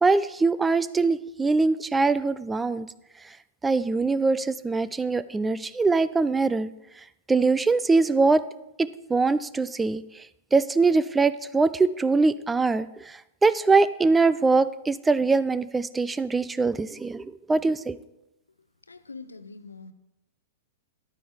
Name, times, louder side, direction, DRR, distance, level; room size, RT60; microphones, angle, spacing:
voice 1, 0.0-2.9 3.6-6.7 7.3-8.4 8.8-10.0 10.5-18.0, right 3 dB, 10° right, 16 dB, 0.3 m, -23 dB
voice 2, 18.9-19.9, left 4 dB, 80° left, 12 dB, 0.6 m, -43 dB
10.0 x 9.2 x 3.5 m, 0.88 s
figure-of-eight pair, 100°, 0 cm